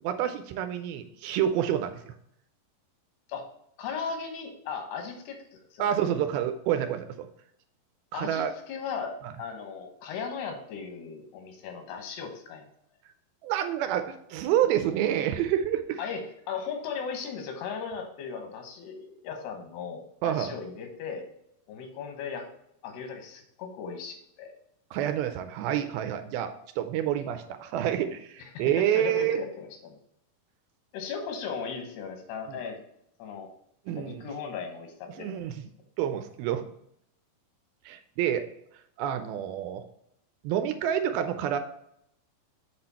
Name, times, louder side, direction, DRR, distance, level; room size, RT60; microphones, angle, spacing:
voice 1, 0.0-2.1 5.8-7.3 8.1-8.5 13.4-16.0 20.2-20.5 24.9-29.4 32.5-32.6 33.9-34.3 35.2-35.7 36.0-36.7 37.9-38.4 39.0-39.8 40.4-41.6, right 10 dB, 80° right, 8 dB, 2.3 m, -28 dB
voice 2, 3.8-6.2 8.1-12.7 16.0-16.2 16.5-21.3 21.7-22.5 22.8-24.5 28.4-30.0 30.9-32.8 33.2-33.5 34.0-35.4, left 6 dB, 90° left, 4 dB, 3.3 m, -37 dB
7.8 x 4.3 x 4.2 m, 0.74 s
omnidirectional pair, 4.6 m